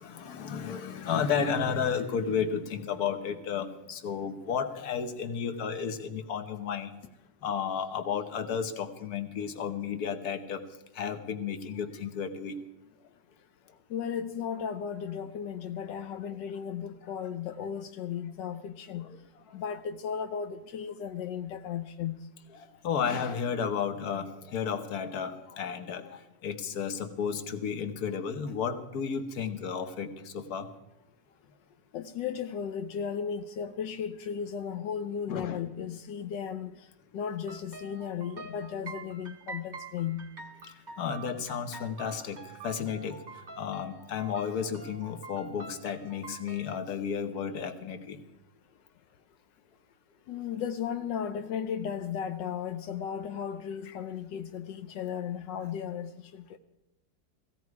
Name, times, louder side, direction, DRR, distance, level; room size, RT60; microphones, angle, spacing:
voice 1, 0.0-6.9 7.4-10.6 10.9-12.6 15.9-16.0 19.0-19.2 22.5-30.7 35.3-35.6 41.0-42.4 42.6-43.2 43.6-48.2, left 7 dB, 60° left, 1.6 m, -33 dB
voice 2, 13.9-19.1 19.5-22.2 31.9-36.9 37.1-40.3 50.3-56.6, left 8 dB, 85° left, 1.4 m, -35 dB
sound 1, 37.5-46.8, right 4 dB, 30° right, 1.1 m, -47 dB
17.0 x 16.0 x 4.8 m
omnidirectional pair, 1.9 m